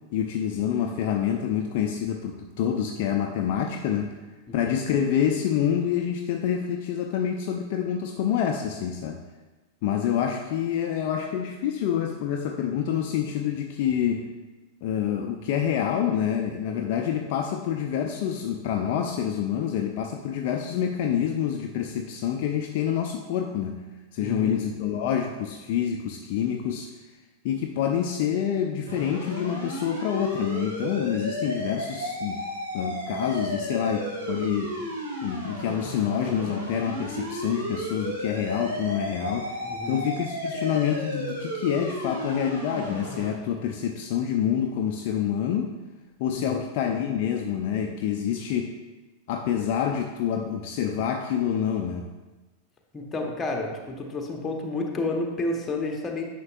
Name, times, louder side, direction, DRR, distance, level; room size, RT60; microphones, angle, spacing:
voice 1, 0.1-4.1 4.5-9.2 9.8-14.3 14.8-23.9 24.1-26.9 27.4-32.4 32.7-34.7 35.2-39.6 39.9-45.7 46.2-48.8 49.3-52.1, left 9 dB, 50° left, 3 dB, 0.5 m, -27 dB
voice 2, 24.2-24.6 39.6-40.0 46.3-46.7 52.9-56.2, left 2 dB, 20° left, 2 dB, 1.1 m, -31 dB
sound 1, 28.9-43.3, equal, 70° right, 2.0 m, -33 dB
9.5 x 5.9 x 2.5 m, 1.2 s
figure-of-eight pair, 90°, 0 cm